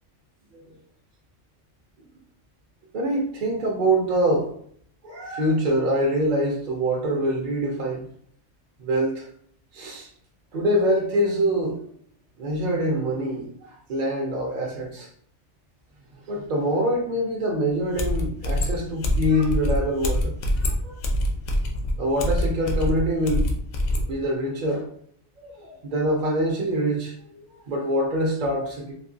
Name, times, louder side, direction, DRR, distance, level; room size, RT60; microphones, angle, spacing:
voice 1, 2.9-4.5 5.0-8.1 8.8-9.3 9.7-10.1 10.5-11.8 12.4-15.1 16.3-20.3 20.6-21.0 22.0-23.6 24.0-24.9 25.4-28.9, right 1 dB, 50° right, -1 dB, 0.6 m, -25 dB
sound 1, 17.7-17.8 18.0-24.1, left 1 dB, 85° left, 1.1 m, -25 dB
3.3 x 2.8 x 2.6 m, 0.63 s
omnidirectional pair, 1.3 m